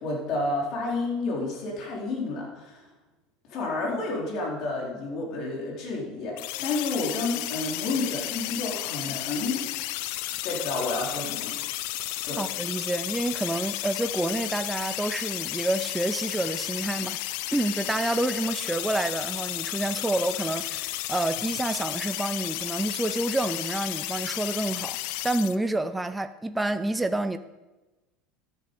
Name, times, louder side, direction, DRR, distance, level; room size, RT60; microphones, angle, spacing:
voice 1, 0.0-2.8 3.5-9.6 10.4-11.5 12.2-12.4, left 3 dB, 50° left, 3.7 m, -30 dB
sound 1, 6.4-25.6, left 16 dB, 70° left, 0.5 m, -33 dB
voice 2, 12.4-17.2 17.5-25.0 25.2-27.4, right 2 dB, 10° right, 0.5 m, -28 dB
12.5 x 8.2 x 5.3 m
supercardioid pair, 120°, 0 cm